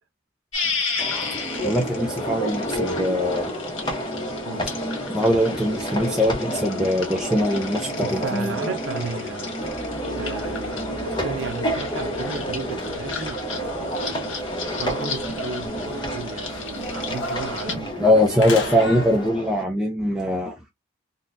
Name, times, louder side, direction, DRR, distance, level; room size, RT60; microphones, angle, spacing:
sound 1, 0.5-17.7, left 5 dB, 80° left, 1.7 m, -35 dB
sound 2, 1.0-19.6, equal, 20° left, 0.9 m, -30 dB
voice 1, 1.6-3.5 5.1-8.5 18.0-20.6, left 1 dB, 5° right, 0.5 m, -22 dB
voice 2, 7.9-9.6 10.2-14.3 14.7-19.0, right 4 dB, 75° right, 0.7 m, -34 dB
sound 3, 9.6-19.3, left 1 dB, 60° left, 0.8 m, -38 dB
3.9 x 2.3 x 2.5 m
head